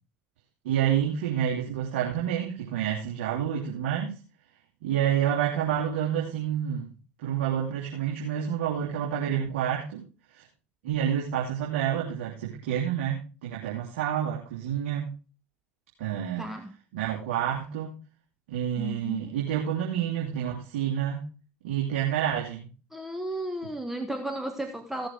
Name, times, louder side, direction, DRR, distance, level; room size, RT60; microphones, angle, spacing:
voice 1, 0.6-4.2 4.8-6.9 7.2-10.0 10.3-10.4 10.8-15.1 16.0-16.5 16.9-18.0 18.5-21.2 21.6-22.7, right 9 dB, 70° right, -3 dB, 2.8 m, -28 dB
voice 2, 16.4-16.7 18.8-19.3 22.9-25.1, right 1 dB, 5° right, 5 dB, 1.3 m, -34 dB
16.0 x 6.8 x 4.5 m, 0.34 s
hypercardioid pair, 75°, 7 cm